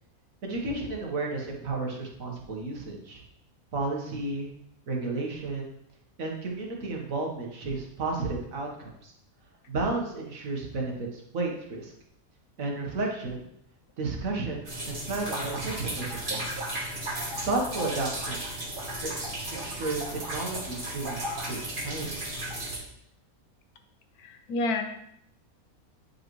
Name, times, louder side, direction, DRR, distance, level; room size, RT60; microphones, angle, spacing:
voice 1, 0.4-3.2 3.7-4.5 4.9-5.8 6.2-9.1 9.7-11.9 12.6-13.5 14.0-16.6 17.4-18.4 19.0-19.1 19.5-22.2, right 3 dB, 65° right, 0 dB, 1.7 m, -32 dB
sound 1, 14.6-22.8, right 1 dB, 35° right, 1.5 m, -34 dB
voice 2, 24.2-24.8, left 2 dB, 85° left, 6 dB, 1.3 m, -29 dB
9.3 x 5.3 x 3.1 m, 0.74 s
omnidirectional pair, 1.6 m